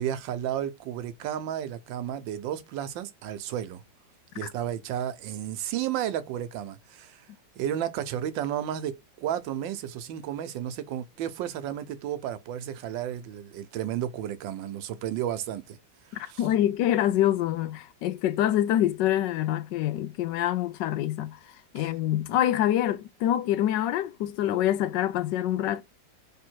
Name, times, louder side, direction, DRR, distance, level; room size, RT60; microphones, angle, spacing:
voice 1, 0.0-3.8 4.3-7.2 7.6-15.8 16.1-16.4 21.8-21.9, right 10 dB, 90° right, 1.4 m, -32 dB
voice 2, 16.1-21.4 21.7-25.8, left 12 dB, 75° left, 1.2 m, -26 dB
3.5 x 3.3 x 4.5 m
omnidirectional pair, 2.0 m